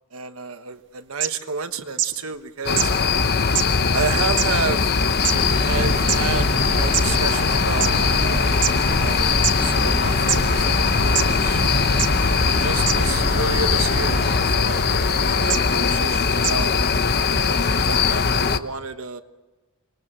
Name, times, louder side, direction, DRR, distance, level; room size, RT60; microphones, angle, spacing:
voice 1, 0.1-2.9 3.9-5.0 5.6-9.3 9.6-12.1 12.6-16.8 17.3-19.2, right 5 dB, 75° right, 8 dB, 1.4 m, -31 dB
sound 1, 1.2-1.3 2.0-2.1 2.8-2.9 3.5-3.6 4.4-4.5 5.2-5.3 6.1-6.2 6.9-7.0 7.8-7.9 8.6-8.7 9.4-9.5 10.3-10.4 11.1-11.2 12.0-12.1 12.9-13.0 14.2-14.4 15.5-15.6 16.4-16.5, right 12 dB, 60° right, 1.7 m, -22 dB
sound 2, 2.7-18.6, left 5 dB, 50° left, 1.0 m, -20 dB
sound 3, 5.2-14.4, right 1 dB, 30° right, 6.2 m, -29 dB
26.5 x 21.0 x 7.5 m, 1.2 s
head